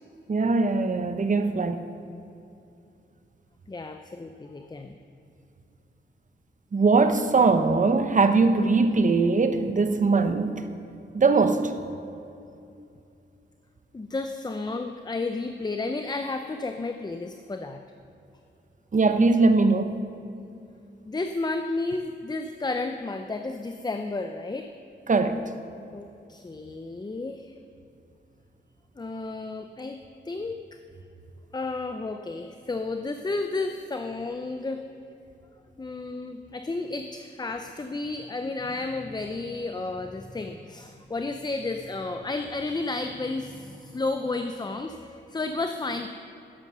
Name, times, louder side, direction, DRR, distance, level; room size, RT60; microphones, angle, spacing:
voice 1, 0.3-1.8 6.7-10.6 11.1-11.7 18.9-20.0 25.1-25.4, right 3 dB, 40° right, 0.8 m, -21 dB
voice 2, 3.7-5.0 13.9-17.8 21.1-24.7 25.9-27.5 29.0-30.0 30.2-30.8 31.5-34.8 35.8-46.1, left 3 dB, 20° left, 0.5 m, -32 dB
12.5 x 11.0 x 6.7 m
wide cardioid pair, 130°, 20 cm